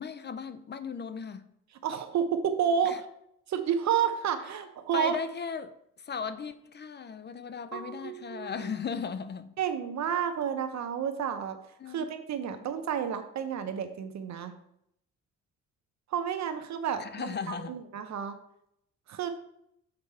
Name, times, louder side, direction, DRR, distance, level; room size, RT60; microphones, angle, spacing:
voice 1, 0.0-1.5 2.8-3.0 4.9-5.8 6.0-9.5 11.8-12.1 17.0-17.8, left 6 dB, 35° left, 0.6 m, -37 dB
voice 2, 1.8-3.1 3.5-5.2 7.7-8.6 9.6-11.6 11.9-14.5 16.1-18.3 19.1-19.3, right 8 dB, 65° right, 1.0 m, -30 dB
6.5 x 4.7 x 5.6 m
cardioid pair, 90°, 30 cm